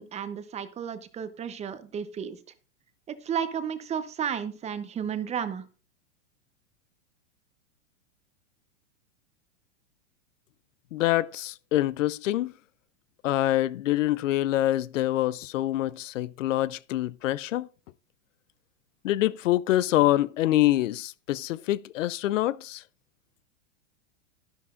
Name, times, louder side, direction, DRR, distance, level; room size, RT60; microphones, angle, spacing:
voice 1, 0.0-2.4 3.1-5.6, right 8 dB, 20° right, 0.7 m, -33 dB
voice 2, 10.9-12.5 13.2-17.7 19.0-22.8, left 14 dB, 85° left, 0.5 m, -25 dB
11.5 x 11.0 x 2.5 m
hypercardioid pair, 130°, 37 cm